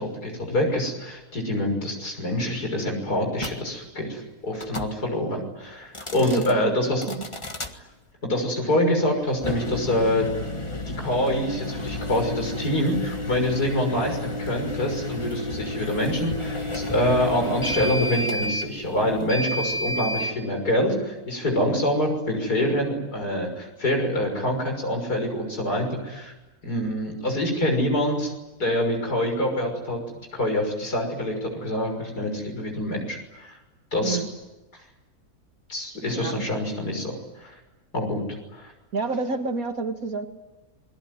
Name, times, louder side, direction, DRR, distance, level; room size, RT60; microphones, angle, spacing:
voice 1, 0.0-7.0 8.2-10.3 11.0-26.3 26.6-28.3 28.6-30.0 30.3-33.6 33.9-34.2 35.7-37.5 37.9-38.2 38.5-38.7, left 1 dB, 90° left, 3 dB, 6.7 m, -26 dB
sound 1, 3.4-3.6 4.5-4.9 5.8-6.5 7.0-7.7 9.3-20.4, left 1 dB, 20° left, 1.6 m, -31 dB
voice 2, 6.2-6.7 7.1-7.3 21.6-21.8 34.0-34.3 36.1-36.4 38.9-40.3, right 3 dB, 65° right, 6 dB, 2.5 m, -29 dB
28.0 x 22.0 x 9.6 m, 1.1 s
omnidirectional pair, 1.6 m